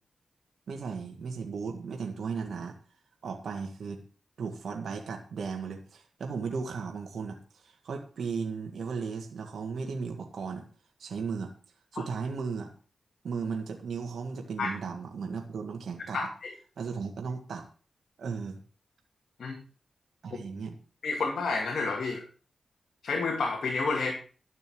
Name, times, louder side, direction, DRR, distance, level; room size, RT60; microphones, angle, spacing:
voice 1, 0.7-2.8 3.2-4.0 4.4-10.6 11.0-11.5 11.9-12.7 13.2-16.2 16.8-17.7 18.2-18.6 20.2-20.8, right 5 dB, 80° right, 3 dB, 1.7 m, -36 dB
voice 2, 16.1-16.5 19.4-19.6 21.0-22.2 23.0-24.1, left 4 dB, 75° left, 1 dB, 2.4 m, -30 dB
12.5 x 6.8 x 6.2 m, 0.39 s
cardioid pair, 50°, 0 cm